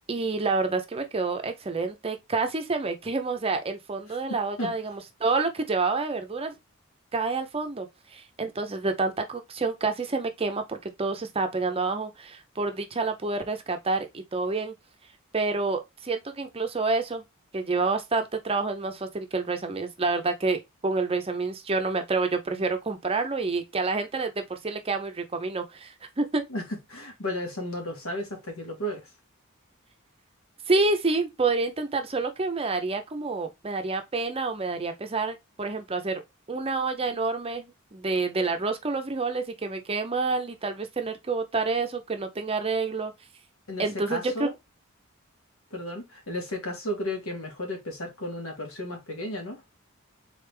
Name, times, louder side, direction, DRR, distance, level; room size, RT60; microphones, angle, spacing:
voice 1, 0.1-6.5 7.1-7.9 8.1-14.7 15.3-17.2 17.5-26.4 30.7-36.2 36.5-43.1 43.8-44.5, right 3 dB, 25° right, 0.6 m, -28 dB
voice 2, 26.9-29.0 43.7-44.5 45.7-49.6, left 1 dB, 75° left, 1.6 m, -33 dB
3.9 x 3.3 x 3.3 m
head